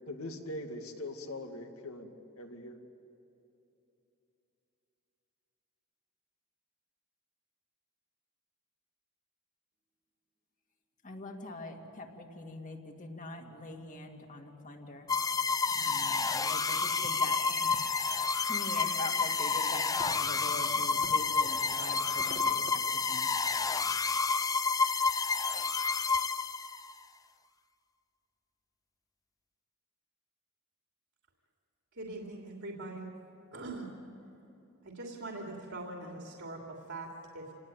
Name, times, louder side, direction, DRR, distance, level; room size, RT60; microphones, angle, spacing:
voice 1, 0.1-2.8, left 1 dB, 75° left, 5 dB, 2.2 m, -42 dB
voice 2, 11.0-15.1 15.8-17.7 18.4-23.3, left 2 dB, 35° left, 3 dB, 2.4 m, -43 dB
sound 1, 15.1-26.9, left 5 dB, 15° left, 0.5 m, -30 dB
Fireworks, 15.7-23.8, right 3 dB, 45° right, 1.6 m, -49 dB
voice 3, 31.9-33.1 33.5-33.9 34.8-37.5, right 2 dB, 65° right, 0 dB, 2.9 m, -42 dB
28.5 x 18.5 x 9.2 m, 2.9 s
head